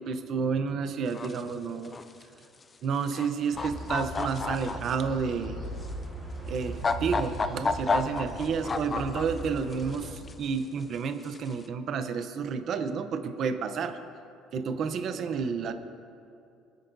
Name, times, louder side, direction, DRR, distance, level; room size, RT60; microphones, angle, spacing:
voice 1, 0.0-1.9 2.8-5.6 6.5-14.0 14.5-15.7, right 5 dB, 35° right, 8 dB, 0.7 m, -30 dB
sound 1, 1.1-1.4 1.8-2.2 3.0-3.3 3.6-4.9 5.8-5.9 6.6-9.5 9.7-10.3 11.3-11.5, left 4 dB, 15° left, 0.4 m, -30 dB
sound 2, 3.5-10.1, right 1 dB, ahead, 3.3 m, -39 dB
25.5 x 10.0 x 2.7 m, 2.6 s
cardioid pair, 175°, 0 cm